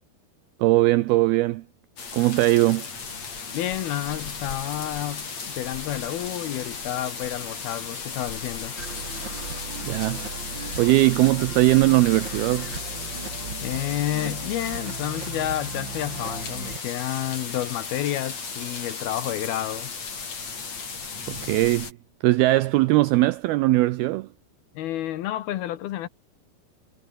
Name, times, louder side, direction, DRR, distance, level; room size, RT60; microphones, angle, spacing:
voice 1, 0.6-1.6 2.1-2.9 9.8-10.2 10.8-12.7 21.3-21.9 22.2-24.3, right 18 dB, 85° right, 2.2 m, -20 dB
sound 1, 2.0-21.9, left 5 dB, 40° left, 5.3 m, -35 dB
voice 2, 3.5-8.8 13.6-19.9 24.7-26.1, left 13 dB, 70° left, 2.7 m, -30 dB
sound 2, 8.8-16.8, right 4 dB, 25° right, 3.8 m, -37 dB
omnidirectional pair, 5.2 m